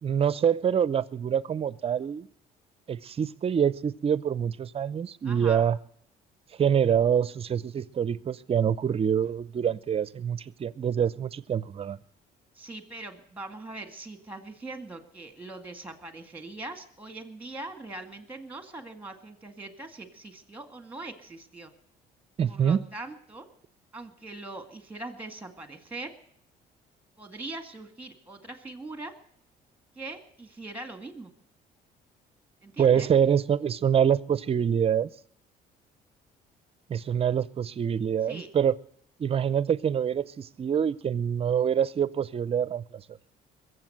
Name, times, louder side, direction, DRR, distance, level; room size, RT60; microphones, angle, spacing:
voice 1, 0.0-2.3 2.9-5.8 6.6-12.0 22.4-22.8 32.8-35.1 36.9-38.7 39.2-43.0, right 8 dB, 35° right, 0.6 m, -25 dB
voice 2, 5.2-5.7 12.6-21.7 22.5-23.5 23.9-26.1 27.2-29.1 30.0-31.3 32.6-33.1 38.2-38.5, right 2 dB, 10° right, 2.1 m, -41 dB
21.0 x 7.9 x 7.9 m
cardioid pair, 110°, 17 cm